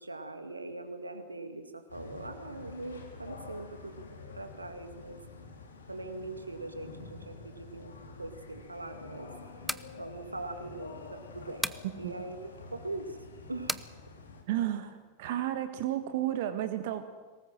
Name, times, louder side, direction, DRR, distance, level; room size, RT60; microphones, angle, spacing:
voice 1, 0.0-4.0 4.3-5.2 5.9-7.9 8.2-9.3 9.9-13.2 13.5-13.9, right 2 dB, 80° right, 7 dB, 2.2 m, -41 dB
sound 1, 1.9-14.4, left 4 dB, 70° left, 3.6 m, -48 dB
sound 2, 9.5-9.9 11.6-11.9 13.7-13.9, equal, ahead, 0.7 m, -33 dB
voice 2, 14.5-17.0, right 12 dB, 50° right, 8 dB, 1.5 m, -32 dB
23.0 x 19.5 x 7.6 m, 1.3 s
figure-of-eight pair, 90°, 0 cm